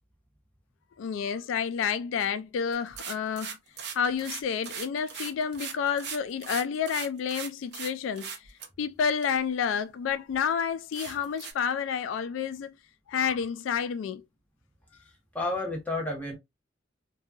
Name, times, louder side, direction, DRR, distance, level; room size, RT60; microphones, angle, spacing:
voice 1, 1.0-3.6 3.9-8.3 8.8-12.7 13.1-14.2, left 7 dB, 80° left, 0.3 m, -29 dB
sound 1, 2.7-7.9 8.2-8.7 9.2-9.3 9.9-10.0 10.3-10.4 10.9-11.5, right 7 dB, 60° right, 0.5 m, -38 dB
voice 2, 15.0-16.4, left 2 dB, 10° left, 0.8 m, -32 dB
2.8 x 2.3 x 2.3 m
head